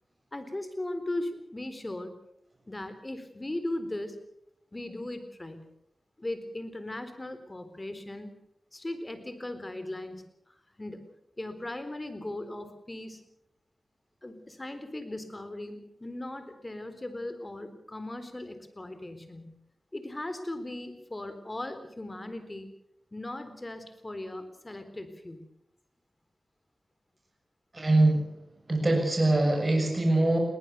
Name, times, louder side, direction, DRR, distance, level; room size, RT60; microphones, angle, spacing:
voice 1, 0.3-2.1 2.7-4.2 4.7-5.7 6.2-8.3 8.7-11.1 11.4-13.3 14.2-19.6 19.9-22.7 23.1-25.5, left 1 dB, 25° left, 10 dB, 3.9 m, -38 dB
voice 2, 27.7-28.3 28.7-30.4, right 2 dB, 35° right, 2 dB, 7.0 m, -23 dB
21.5 x 19.0 x 7.0 m, 0.79 s
cardioid pair, 55°, 0 cm